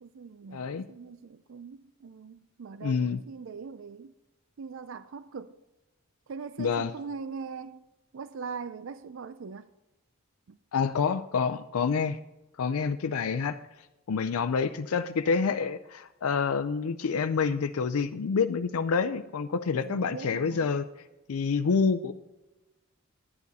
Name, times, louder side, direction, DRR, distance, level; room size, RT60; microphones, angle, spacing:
voice 1, 0.0-4.1 4.6-5.6 6.3-7.9 8.1-9.7 10.5-10.6 19.7-20.8, right 5 dB, 60° right, 0.4 m, -41 dB
voice 2, 0.5-0.9 2.8-3.2 6.6-6.9 10.7-12.2 12.6-13.6 14.1-20.8 21.3-22.1, left 5 dB, 90° left, 0.5 m, -27 dB
10.5 x 9.8 x 4.1 m
head